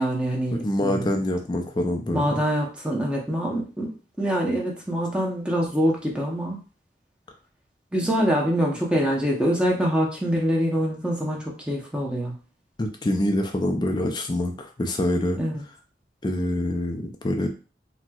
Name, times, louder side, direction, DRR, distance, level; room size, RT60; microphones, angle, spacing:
voice 1, 0.0-1.2 2.1-3.9 4.2-6.6 7.9-12.3 15.4-15.6, equal, 5° right, -2 dB, 0.7 m, -25 dB
voice 2, 0.6-2.4 12.8-15.4 16.2-17.5, left 1 dB, 25° left, 4 dB, 0.4 m, -25 dB
4.2 x 2.1 x 2.3 m, 0.35 s
head